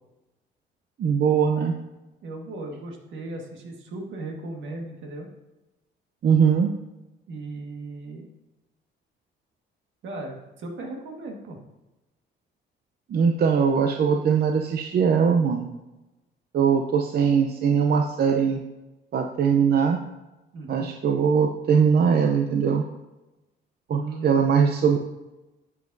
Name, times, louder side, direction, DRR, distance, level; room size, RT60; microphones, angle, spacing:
voice 1, 1.0-1.7 6.2-6.7 13.1-15.7 16.5-18.6 19.1-20.0 20.7-22.8 23.9-25.0, right 6 dB, 55° right, 4 dB, 0.6 m, -21 dB
voice 2, 2.2-5.3 7.3-8.3 10.0-11.6 20.5-20.9 23.9-24.3, right 2 dB, 75° right, 1 dB, 1.7 m, -37 dB
11.0 x 7.3 x 2.7 m, 1.0 s
cardioid pair, 90°, 20 cm